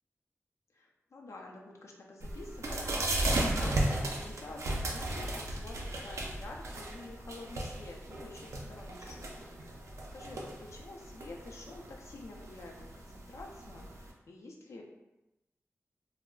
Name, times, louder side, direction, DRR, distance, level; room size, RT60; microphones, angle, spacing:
voice 1, 0.7-9.7 10.1-14.8, left 2 dB, 75° left, -1 dB, 0.5 m, -48 dB
sound 1, 2.2-14.1, right 1 dB, 85° right, 0.4 m, -36 dB
2.3 x 2.0 x 3.5 m, 0.96 s
cardioid pair, 60°, 5 cm